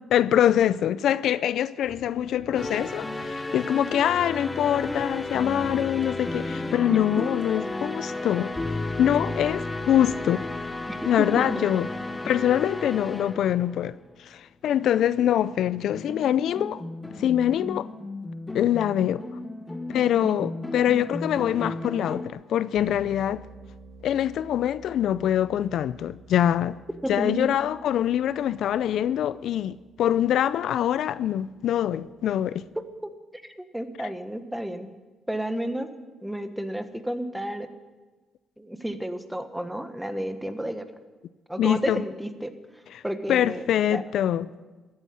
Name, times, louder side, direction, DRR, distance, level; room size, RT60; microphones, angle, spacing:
voice 1, 0.1-10.5 11.0-11.9 12.3-16.8 17.2-17.9 18.5-19.2 19.9-23.4 24.0-26.8 27.1-32.6 41.6-42.0 42.9-43.0 43.3-44.5, left 10 dB, 75° left, 0.4 m, -24 dB
sound 1, 1.8-10.4, right 2 dB, 50° right, 4.8 m, -50 dB
sound 2, 2.6-14.2 15.6-22.3, left 2 dB, 15° left, 1.0 m, -34 dB
voice 2, 6.9-7.2 10.9-11.7 14.8-15.0 20.2-20.3 27.0-27.5 33.0-33.1 33.4-34.9 35.3-35.9 36.2-37.7 38.6-40.9 41.5-42.5 43.0-44.0, right 1 dB, 5° right, 1.3 m, -31 dB
sound 3, 22.7-32.8, right 3 dB, 70° right, 2.5 m, -51 dB
14.5 x 9.6 x 8.7 m
cardioid pair, 90°, 0 cm